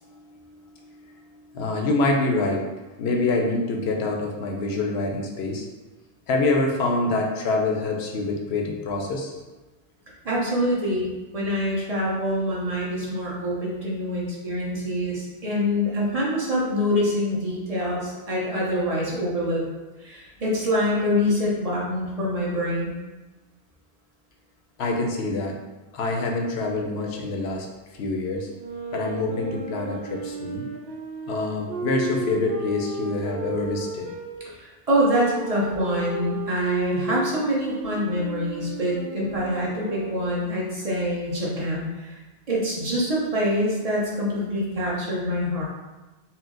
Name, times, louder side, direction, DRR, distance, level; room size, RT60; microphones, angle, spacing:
voice 1, 0.0-5.7 6.3-9.4 24.8-25.6 25.9-27.7 27.9-28.5 28.9-30.6 31.3-34.1, left 2 dB, 80° left, 1 dB, 0.9 m, -26 dB
voice 2, 10.2-11.1 11.3-19.6 20.0-22.9 34.4-42.2 42.5-45.6, equal, 40° right, -5 dB, 1.0 m, -25 dB
sound 1, 28.5-34.3 35.0-40.5, right 3 dB, 85° right, 0.9 m, -34 dB
4.3 x 2.0 x 3.8 m, 1.2 s
omnidirectional pair, 1.1 m